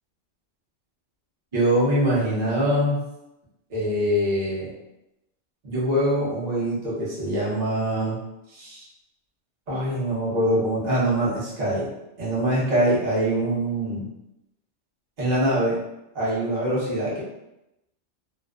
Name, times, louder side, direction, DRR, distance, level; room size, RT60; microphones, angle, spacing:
voice 1, 1.5-3.0 3.7-4.7 5.6-8.2 8.5-8.8 9.7-11.9 12.2-14.0 15.2-15.8 16.1-17.2, right 1 dB, 40° right, -7 dB, 0.8 m, -23 dB
2.5 x 2.1 x 2.3 m, 0.89 s
omnidirectional pair, 1.3 m